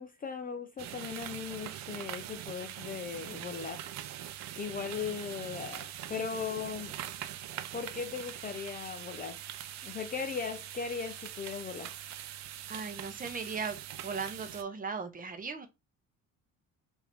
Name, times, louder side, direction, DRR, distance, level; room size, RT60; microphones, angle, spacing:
voice 1, 0.0-3.8 4.6-6.9 7.7-9.4 9.8-11.9, left 6 dB, 25° left, 0.4 m, -38 dB
sound 1, 0.8-14.6, right 11 dB, 55° right, 0.5 m, -43 dB
voice 2, 12.7-13.8 14.0-15.7, right 5 dB, 25° right, 0.8 m, -37 dB
4.7 x 2.7 x 3.3 m
cardioid pair, 150°, 34 cm